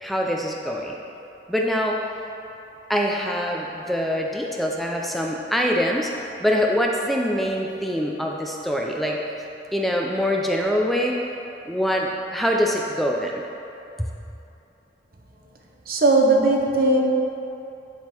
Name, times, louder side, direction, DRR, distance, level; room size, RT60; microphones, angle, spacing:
voice 1, 0.0-1.0 1.5-2.0 2.9-6.1 6.4-9.2 9.7-11.2 11.7-13.4 14.0-14.1, equal, ahead, -1 dB, 0.3 m, -24 dB
voice 2, 15.9-17.0, right 2 dB, 50° right, 0 dB, 0.8 m, -18 dB
10.0 x 3.7 x 4.4 m, 2.9 s
head